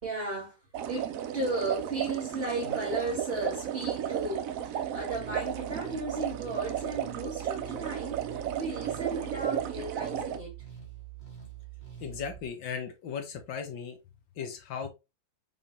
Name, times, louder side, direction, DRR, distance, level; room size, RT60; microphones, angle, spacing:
voice 1, 0.0-0.6 0.9-10.6, right 2 dB, 30° right, 2.2 m, -35 dB
sound 1, 0.7-10.4, right 9 dB, 85° right, 0.7 m, -34 dB
sound 2, 4.9-12.5, right 11 dB, 35° left, 2.1 m, -45 dB
voice 2, 12.0-14.0 14.4-14.9, left 6 dB, 75° left, 1.6 m, -37 dB
5.1 x 3.7 x 2.7 m
omnidirectional pair, 2.1 m